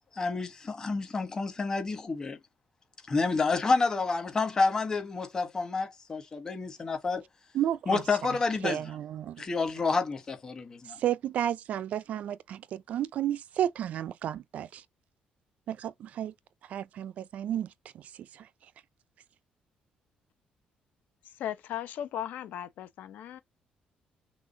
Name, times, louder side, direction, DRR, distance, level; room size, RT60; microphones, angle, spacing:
voice 1, 0.1-2.4 3.1-7.2 7.9-8.9 9.4-11.0, left 4 dB, 20° left, 1.2 m, -29 dB
voice 2, 7.5-8.4 8.6-9.4 11.0-14.8 15.7-16.3 16.7-17.7, right 11 dB, 55° right, 0.4 m, -32 dB
voice 3, 21.4-23.4, left 10 dB, 75° left, 0.8 m, -37 dB
6.1 x 2.4 x 2.7 m
cardioid pair, 160°, 3 cm